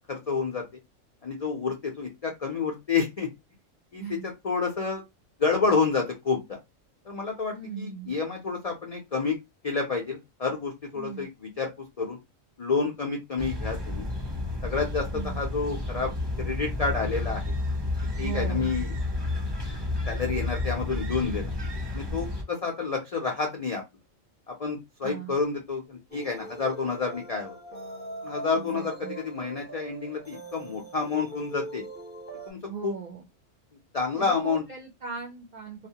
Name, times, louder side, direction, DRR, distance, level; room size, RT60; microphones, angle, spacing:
voice 1, 0.1-0.6 1.2-3.3 3.9-5.0 5.4-6.6 7.1-9.4 9.6-11.7 12.0-12.2 12.6-14.1 14.6-16.1 16.4-17.5 18.2-18.9 20.1-21.5 21.9-23.8 24.5-27.6 28.2-31.8 32.5-32.9 33.9-34.6, left 4 dB, 75° left, 1 dB, 0.3 m, -29 dB
voice 2, 7.5-8.2 11.0-11.3 15.1-15.4 18.2-18.7 25.0-25.4 28.5-29.2 32.7-33.3 34.2-35.9, right 6 dB, 70° right, -1 dB, 0.4 m, -38 dB
sound 1, 13.4-22.4, left 2 dB, 25° right, 0.8 m, -31 dB
sound 2, 26.1-32.5, right 1 dB, 10° left, 0.7 m, -40 dB
2.3 x 2.1 x 2.7 m, 0.21 s
omnidirectional pair, 1.4 m